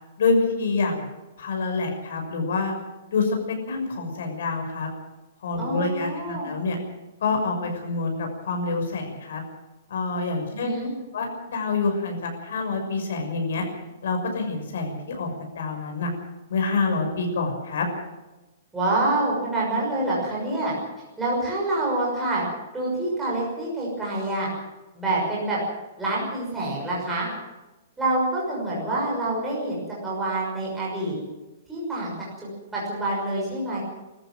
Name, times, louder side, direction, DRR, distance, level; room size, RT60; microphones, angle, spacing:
voice 1, 0.2-1.1 1.4-2.7 3.1-3.4 3.7-4.9 5.4-6.8 7.2-9.4 9.9-10.8 11.1-13.6 14.0-16.1 16.5-17.9, left 4 dB, 60° left, 3 dB, 6.2 m, -26 dB
voice 2, 5.6-6.5 10.5-10.9 18.7-20.7 21.2-22.4 22.7-24.5 24.9-25.6 26.0-27.3 28.0-31.2 31.7-33.8, right 2 dB, 5° right, -6 dB, 6.0 m, -27 dB
21.5 x 14.0 x 9.3 m, 1.1 s
hypercardioid pair, 180°, 0 cm